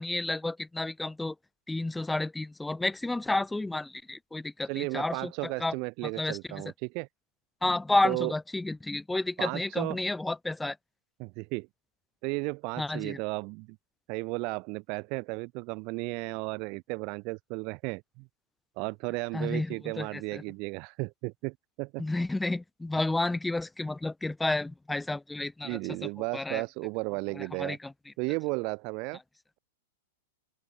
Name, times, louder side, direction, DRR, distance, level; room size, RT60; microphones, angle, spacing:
voice 1, 0.0-1.3 1.7-5.7 6.0-6.6 7.6-10.8 12.8-13.2 19.3-20.4 22.0-26.6 27.3-27.9, left 2 dB, 5° left, 3.4 m, -31 dB
voice 2, 4.7-7.1 8.0-8.3 9.4-10.0 11.2-11.7 12.2-13.8 14.1-18.3 18.8-22.0 25.6-27.8 28.2-29.2, right 30 dB, 45° right, 2.6 m, -34 dB
open air
hypercardioid pair, 130°, 0 cm